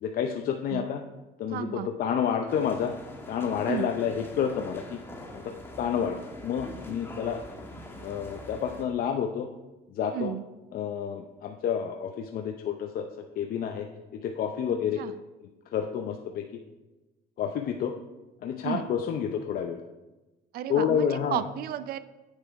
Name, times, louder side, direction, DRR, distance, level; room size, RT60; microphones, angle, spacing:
voice 1, 0.0-1.0 1.4-2.9 3.3-5.0 5.3-7.4 8.0-9.5 9.9-10.3 10.7-13.1 13.4-13.9 14.1-15.0 15.7-16.4 17.4-17.9 18.4-19.8 20.7-21.4, left 8 dB, 60° left, 4 dB, 0.6 m, -29 dB
voice 2, 1.5-1.9 3.7-3.9 10.1-10.4 15.0-15.1 18.6-18.8 20.5-22.0, right 11 dB, 65° right, 13 dB, 0.5 m, -32 dB
sound 1, 2.5-8.8, left 1 dB, 15° left, 1.4 m, -43 dB
8.3 x 6.6 x 4.6 m, 1.1 s
cardioid pair, 110°, 17 cm